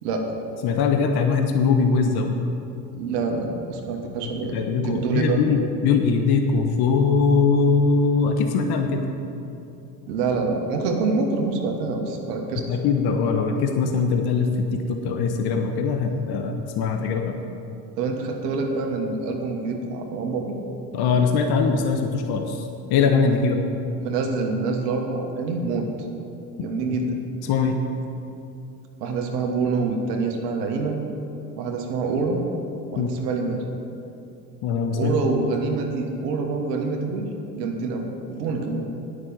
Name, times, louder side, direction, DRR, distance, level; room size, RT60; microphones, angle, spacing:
voice 1, 0.0-0.3 2.9-5.4 10.1-12.7 16.0-16.2 18.0-20.6 24.0-25.9 26.6-27.2 29.0-31.0 31.6-32.5 32.9-33.6 34.9-37.3 37.5-38.8, right 4 dB, 70° right, 2 dB, 1.5 m, -26 dB
voice 2, 0.6-2.4 4.5-9.0 12.7-17.4 20.9-23.6 26.6-26.7 27.4-27.8 33.0-33.1 34.6-35.2, left 5 dB, 50° left, 4 dB, 1.1 m, -21 dB
9.5 x 6.1 x 8.6 m, 2.8 s
hypercardioid pair, 75°, 50 cm